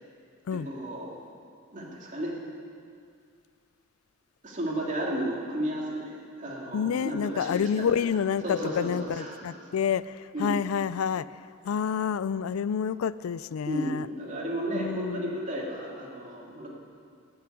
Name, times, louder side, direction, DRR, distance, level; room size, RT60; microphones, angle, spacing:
voice 1, 0.5-1.1 1.7-2.4 4.4-7.8 8.4-9.3 10.3-10.6 13.7-16.7, right 1 dB, 40° right, 2.7 m, -33 dB
voice 2, 6.7-14.1 14.7-15.4, left 7 dB, 90° left, 0.4 m, -29 dB
19.0 x 7.1 x 8.2 m
head